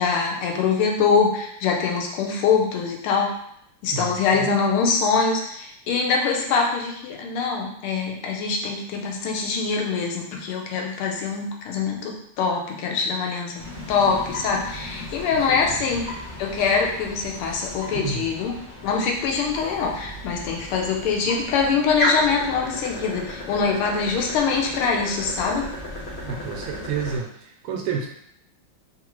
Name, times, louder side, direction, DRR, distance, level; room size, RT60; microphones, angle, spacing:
voice 1, 0.0-3.3 3.8-13.5 13.9-16.1 16.4-18.5 18.8-25.6, left 5 dB, 85° left, 0 dB, 1.6 m, -23 dB
voice 2, 3.9-4.5 15.5-15.9 17.9-18.3 26.2-28.1, right 6 dB, 85° right, 1 dB, 1.5 m, -30 dB
sound 1, 13.6-27.2, left 1 dB, 65° left, 0.5 m, -34 dB
3.8 x 2.5 x 3.0 m, 0.73 s
omnidirectional pair, 2.3 m